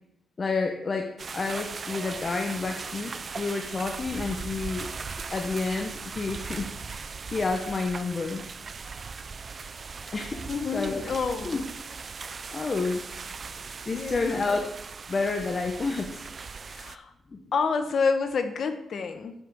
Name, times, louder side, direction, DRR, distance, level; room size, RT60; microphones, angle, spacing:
voice 1, 0.4-4.9 5.3-8.4 10.1-10.4 10.7-11.0 11.4-11.6 12.5-13.0 13.9-14.7 15.1-16.2 17.3-17.4, left 4 dB, 40° left, 4 dB, 1.2 m, -30 dB
sound 1, 1.2-17.0, right 5 dB, 45° right, 0.6 m, -39 dB
voice 2, 10.5-11.6 13.9-14.5 16.7-17.1 17.5-19.3, left 5 dB, 60° left, 8 dB, 1.2 m, -28 dB
8.6 x 8.0 x 7.0 m, 0.79 s
cardioid pair, 80°, 0 cm